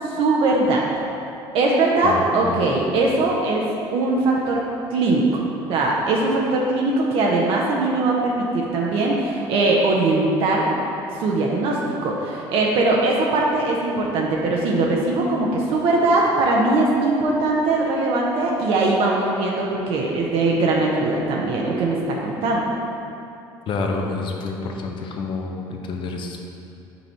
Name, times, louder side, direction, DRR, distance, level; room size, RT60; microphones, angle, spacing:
voice 1, 0.0-0.8 1.5-3.7 3.9-4.6 4.9-5.4 5.7-10.7 11.2-22.7, right 2 dB, 65° right, -2 dB, 0.8 m, -21 dB
voice 2, 2.0-2.7 23.7-26.4, left 3 dB, 55° left, 2 dB, 0.8 m, -28 dB
5.5 x 4.2 x 4.4 m, 2.8 s
supercardioid pair, 90°, 10 cm